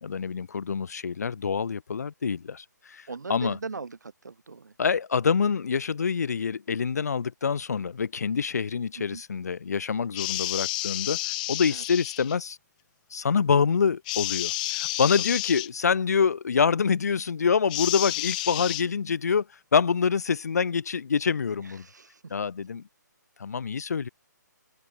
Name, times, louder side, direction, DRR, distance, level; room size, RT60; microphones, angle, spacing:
voice 1, 0.0-3.6 4.8-11.2 11.5-12.6 13.1-19.5 19.7-21.9 22.3-22.8 23.4-24.1, left 6 dB, 55° left, 1.1 m, -26 dB
voice 2, 3.1-4.7 9.1-9.2 11.7-11.8 21.6-22.3, right 4 dB, 65° right, 3.5 m, -39 dB
sound 1, 10.1-12.4 14.1-15.7 17.7-18.8, left 20 dB, 25° left, 1.0 m, -30 dB
figure-of-eight pair, 140°, 10 cm